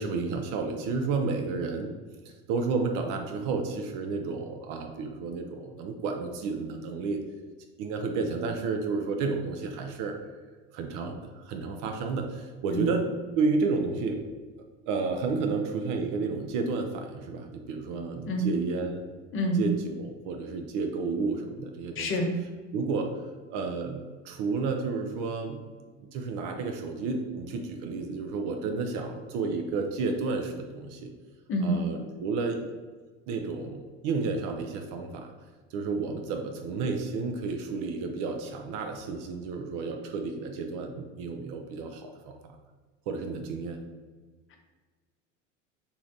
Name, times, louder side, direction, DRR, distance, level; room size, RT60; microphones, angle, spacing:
voice 1, 0.0-1.9 2.5-7.2 7.8-10.1 10.7-14.2 14.9-19.0 19.5-22.1 22.7-23.1 23.5-25.6 26.0-31.1 31.6-32.7 33.3-35.3 35.7-42.5 43.1-43.8, right 4 dB, 55° right, 4 dB, 0.5 m, -31 dB
voice 2, 22.0-22.3 31.5-31.8, equal, 35° left, 2 dB, 0.7 m, -27 dB
3.0 x 2.6 x 2.6 m, 1.4 s
hypercardioid pair, 75°, 38 cm